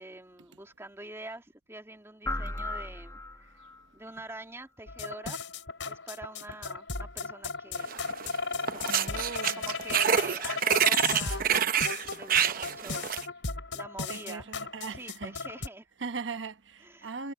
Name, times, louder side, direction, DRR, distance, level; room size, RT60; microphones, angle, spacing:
voice 1, 0.0-3.5 3.9-5.5 5.8-8.1 8.5-13.0 13.7-14.6 14.9-15.9 16.8-17.1, right 2 dB, 15° right, 2.3 m, -45 dB
sound 1, 2.2-3.8, left 2 dB, 20° left, 1.6 m, -36 dB
sound 2, 4.9-15.7, left 4 dB, 85° left, 4.6 m, -36 dB
sound 3, 7.9-8.4 8.6-13.2, right 8 dB, 50° right, 0.8 m, -27 dB
voice 2, 8.9-9.7 14.1-15.4 16.0-17.3, right 4 dB, 80° right, 1.0 m, -39 dB
head